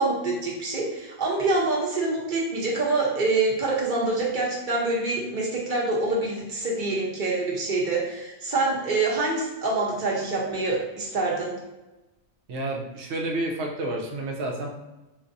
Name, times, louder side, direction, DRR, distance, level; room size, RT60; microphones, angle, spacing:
voice 1, 0.0-11.5, right 3 dB, 45° right, -3 dB, 1.0 m, -26 dB
voice 2, 12.5-14.7, right 2 dB, 70° right, 1 dB, 1.0 m, -30 dB
4.4 x 2.6 x 2.6 m, 1.0 s
omnidirectional pair, 1.2 m